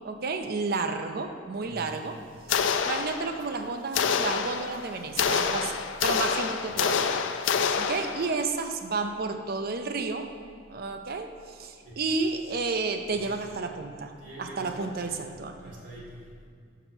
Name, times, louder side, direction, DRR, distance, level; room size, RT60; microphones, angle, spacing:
voice 1, 0.0-2.2 2.5-2.6 2.8-7.2 7.5-10.3 10.7-14.1 14.4-15.7, right 4 dB, 50° right, 6 dB, 0.5 m, -31 dB
sound 1, 2.5-3.6 3.9-8.4, left 6 dB, 75° left, 0.4 m, -27 dB
voice 2, 14.2-15.1 15.6-16.5, right 1 dB, 80° right, -5 dB, 2.1 m, -44 dB
5.9 x 5.5 x 6.0 m, 2.1 s
head